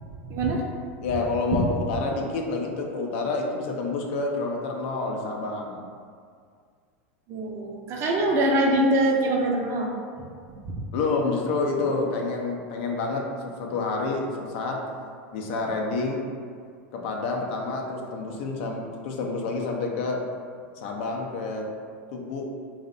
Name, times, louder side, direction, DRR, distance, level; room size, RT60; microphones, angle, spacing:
voice 1, 0.2-0.6 7.3-9.9 10.6-10.8, right 1 dB, 40° right, 0 dB, 0.4 m, -23 dB
voice 2, 1.0-5.9 10.9-14.8 15.3-16.3 16.9-20.2 20.8-21.7 22.1-22.5, left 3 dB, 60° left, 1 dB, 0.4 m, -28 dB
2.6 x 2.0 x 2.5 m, 2.1 s
hypercardioid pair, 100°, 7 cm